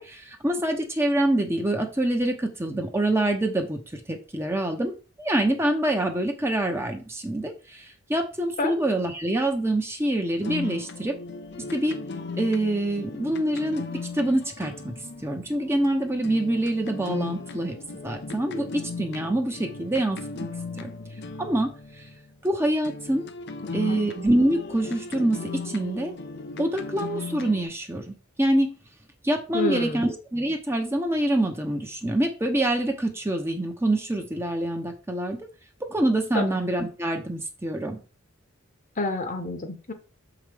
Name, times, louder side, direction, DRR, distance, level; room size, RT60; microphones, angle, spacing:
voice 1, 0.0-11.1 11.7-12.0 12.4-14.9 15.2-17.8 18.0-20.2 20.8-20.9 21.4-21.7 22.4-23.2 23.7-26.1 26.6-28.7 29.2-35.4 35.9-38.0, right 1 dB, 15° right, 3 dB, 0.9 m, -25 dB
sound 1, 10.4-22.5 22.8-27.6, left 4 dB, 55° left, 0.6 m, -37 dB
voice 2, 23.6-24.0 29.5-30.0 36.3-36.6 39.0-39.9, left 2 dB, 40° left, 6 dB, 1.1 m, -28 dB
7.0 x 4.9 x 3.5 m, 0.34 s
head